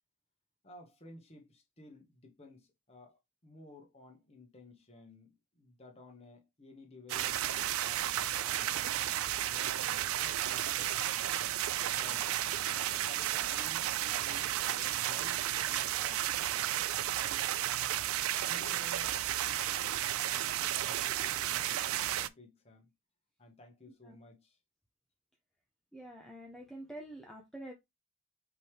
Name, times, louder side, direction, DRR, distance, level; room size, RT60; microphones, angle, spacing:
voice 1, 0.6-9.2 9.4-11.3 12.0-16.8 17.2-17.4 18.4-19.7 20.2-22.9 23.4-24.6, left 2 dB, 30° left, 1.2 m, -55 dB
sound 1, 7.1-22.3, right 12 dB, 80° right, 0.3 m, -33 dB
voice 2, 25.9-27.7, right 1 dB, ahead, 0.6 m, -47 dB
5.3 x 3.1 x 3.2 m
head